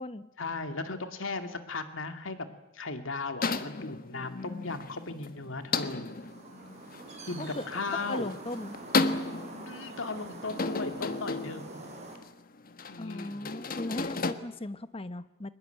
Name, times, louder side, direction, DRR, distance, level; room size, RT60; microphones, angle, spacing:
voice 1, 0.4-2.5 2.7-6.1 7.3-8.3 9.7-11.8 12.9-13.5, left 3 dB, 75° left, 8 dB, 2.3 m, -36 dB
sound 1, 3.4-14.3, left 3 dB, 45° left, 1.3 m, -34 dB
sound 2, 6.0-12.2, right 2 dB, 35° right, 5.5 m, -45 dB
voice 2, 8.0-8.8 13.0-15.5, left 1 dB, 30° left, 13 dB, 1.0 m, -38 dB
23.0 x 20.5 x 9.2 m, 0.89 s
head